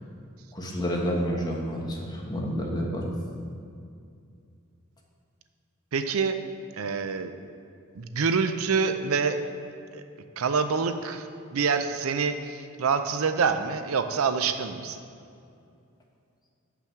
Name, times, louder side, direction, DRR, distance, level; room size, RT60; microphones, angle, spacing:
voice 1, 0.5-3.1, equal, 20° left, -2 dB, 1.3 m, -29 dB
voice 2, 5.9-6.4 6.8-7.3 7.9-9.4 9.9-10.0 10.4-15.0, right 5 dB, 85° right, 9 dB, 0.5 m, -26 dB
8.1 x 5.8 x 5.8 m, 2.4 s
head